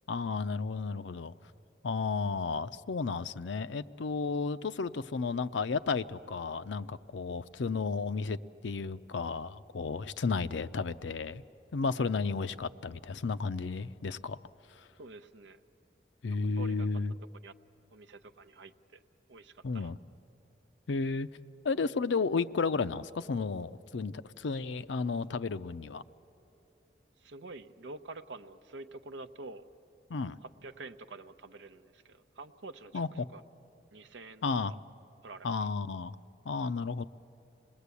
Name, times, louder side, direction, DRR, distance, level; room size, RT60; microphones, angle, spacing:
voice 1, 0.1-1.3 1.8-8.4 8.6-11.4 11.7-14.4 16.2-17.1 19.6-20.0 20.9-21.3 21.6-26.0 30.1-30.4 32.9-33.3 34.4-34.7 35.4-36.2 36.5-37.0, left 4 dB, 85° left, 14 dB, 0.5 m, -33 dB
voice 2, 15.0-15.6 16.3-16.9 17.4-17.5 17.9-19.0 19.3-19.9 27.2-29.7 30.4-33.4 33.9-34.4 35.2-35.6, right 3 dB, 85° right, 10 dB, 0.7 m, -47 dB
27.5 x 20.0 x 8.3 m, 2.9 s
head